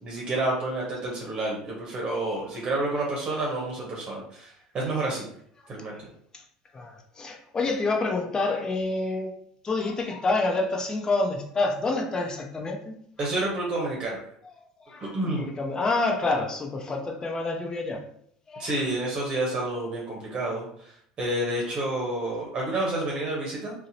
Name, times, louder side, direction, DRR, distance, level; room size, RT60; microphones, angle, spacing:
voice 1, 0.0-5.2 5.7-5.9 13.2-14.2 15.0-15.5 18.6-23.7, right 2 dB, 40° right, -3 dB, 0.8 m, -29 dB
voice 2, 6.7-9.3 9.6-12.9 14.9-15.1 15.4-18.0 18.5-18.7, left 3 dB, 25° left, 2 dB, 0.6 m, -27 dB
2.7 x 2.0 x 2.7 m, 0.67 s
hypercardioid pair, 80°, 3 cm